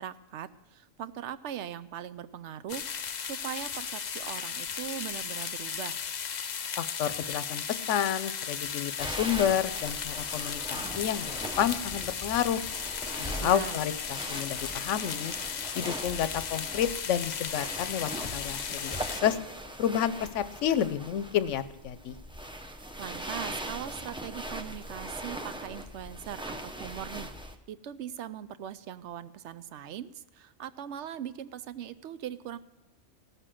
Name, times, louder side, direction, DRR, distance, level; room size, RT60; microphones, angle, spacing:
voice 1, 0.0-6.0 13.3-13.8 23.0-32.6, right 10 dB, 65° right, 14 dB, 0.9 m, -40 dB
sound 1, 2.7-19.2, left 7 dB, 50° left, 0.5 m, -36 dB
voice 2, 6.8-12.6 13.2-15.3 15.7-19.4 19.8-22.1, left 10 dB, 70° left, 14 dB, 1.0 m, -30 dB
sound 2, 9.0-27.6, right 1 dB, 5° right, 0.3 m, -40 dB
16.5 x 6.8 x 7.5 m, 1.0 s
omnidirectional pair, 1.3 m